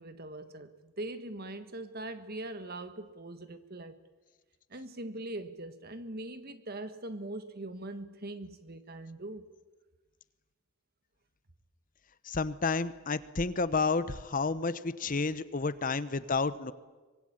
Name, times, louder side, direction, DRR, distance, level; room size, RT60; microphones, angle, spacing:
voice 1, 0.0-4.0 4.7-9.5 15.0-15.2, right 2 dB, 45° right, 1.5 m, -41 dB
voice 2, 12.3-16.7, left 4 dB, 40° left, 0.8 m, -30 dB
24.5 x 20.5 x 8.8 m
head